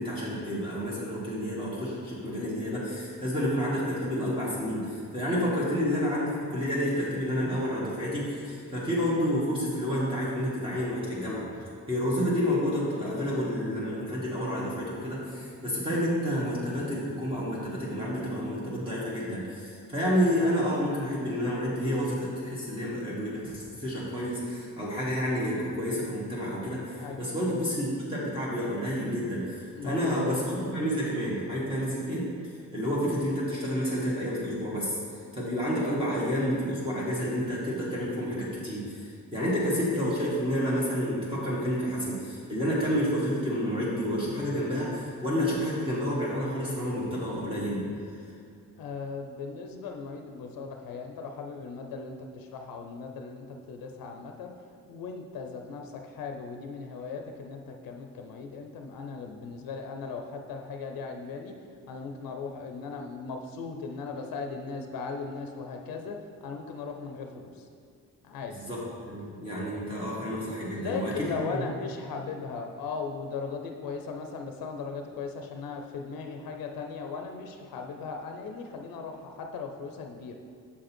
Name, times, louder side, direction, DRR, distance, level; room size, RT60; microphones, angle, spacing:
voice 1, 0.0-11.5 11.9-32.3 32.7-35.0 35.3-47.9 68.6-71.6, equal, 15° right, -8 dB, 1.5 m, -29 dB
voice 2, 27.0-27.6 29.7-30.3 48.8-54.5 54.9-61.6 61.9-67.7 68.2-68.5 70.7-80.4, left 4 dB, 85° left, 4 dB, 0.6 m, -38 dB
7.0 x 5.2 x 4.4 m, 2.4 s
cardioid pair, 110°, 34 cm